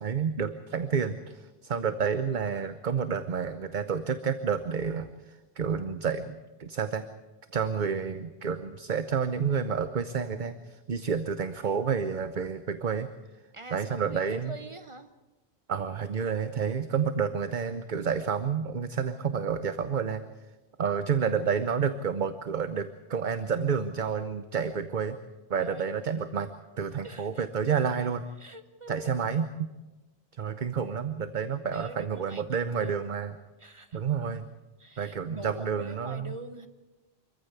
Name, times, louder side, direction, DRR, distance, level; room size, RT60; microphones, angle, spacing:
voice 1, 0.0-7.0 7.5-13.1 13.7-14.5 15.7-20.2 20.8-25.2 25.5-26.5 26.8-28.2 28.9-29.5 30.4-33.3 33.9-34.5 35.0-36.3, right 6 dB, 50° right, 11 dB, 0.9 m, -29 dB
voice 2, 13.5-15.1 25.6-25.9 27.0-27.4 28.4-29.3 31.7-33.0 33.6-34.0 34.8-36.7, right 1 dB, 30° right, 9 dB, 1.2 m, -44 dB
25.5 x 14.5 x 8.3 m, 1.1 s
omnidirectional pair, 1.1 m